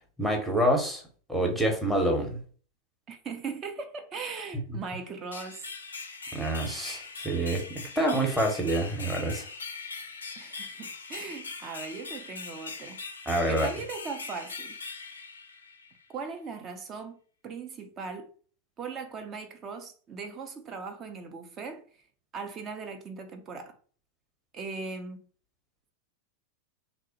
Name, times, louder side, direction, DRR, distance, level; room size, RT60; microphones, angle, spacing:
voice 1, 0.2-1.0 1.3-2.4 6.3-9.5 13.3-13.7, right 1 dB, ahead, 0.7 m, -27 dB
voice 2, 3.1-5.7 10.4-13.0 13.5-14.8 16.1-18.3 18.8-21.8 22.3-23.8 24.5-25.3, right 4 dB, 30° right, 0.4 m, -39 dB
sound 1, 5.3-16.0, left 4 dB, 75° left, 0.4 m, -41 dB
2.9 x 2.0 x 2.8 m
figure-of-eight pair, 90°, 0 cm